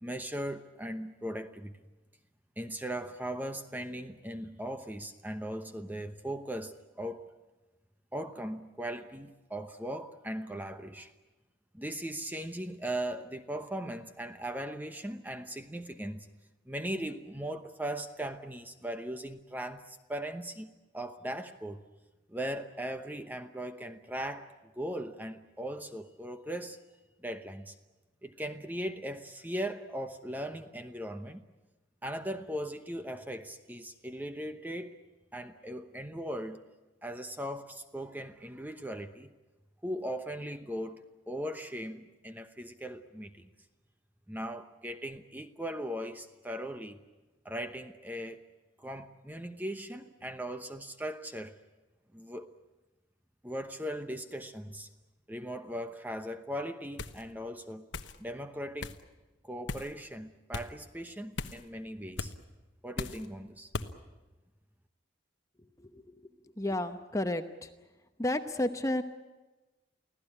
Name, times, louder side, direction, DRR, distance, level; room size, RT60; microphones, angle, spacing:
voice 1, 0.0-1.7 2.6-7.3 8.1-11.1 11.7-16.3 16.7-21.8 22.3-26.8 27.2-27.7 28.2-31.5 32.0-35.0 35.3-36.6 37.0-39.3 39.8-43.5 44.3-47.0 47.4-48.4 48.8-51.6 52.1-52.5 53.4-54.9 55.3-57.9 58.2-59.0 59.4-62.3 62.8-63.7, right 1 dB, 10° right, 0.9 m, -39 dB
sound 1, 57.0-57.2 57.9-58.2 58.8-59.0 59.7-59.9 60.5-60.7 61.4-61.6 62.2-62.4 63.0-63.3 63.7-63.9, left 3 dB, 85° left, 1.1 m, -37 dB
voice 2, 65.8-66.1 66.6-67.7 68.2-69.0, left 1 dB, 15° left, 0.9 m, -32 dB
24.5 x 16.5 x 10.0 m
head